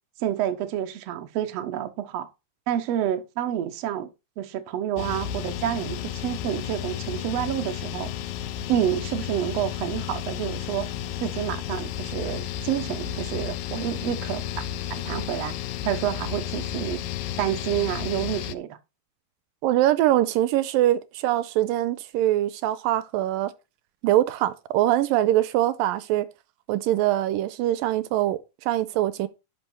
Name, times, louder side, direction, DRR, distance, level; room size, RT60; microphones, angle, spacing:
voice 1, 0.2-2.3 2.7-4.1 4.4-8.1 8.7-10.9 11.2-15.6 15.8-17.0 17.4-18.8, right 11 dB, 65° right, 1.7 m, -29 dB
sound 1, 5.0-18.6, left 10 dB, 80° left, 2.3 m, -32 dB
voice 2, 19.6-23.5 24.0-26.3 26.7-29.3, right 14 dB, 80° right, 2.3 m, -23 dB
12.0 x 5.2 x 4.4 m
omnidirectional pair, 4.1 m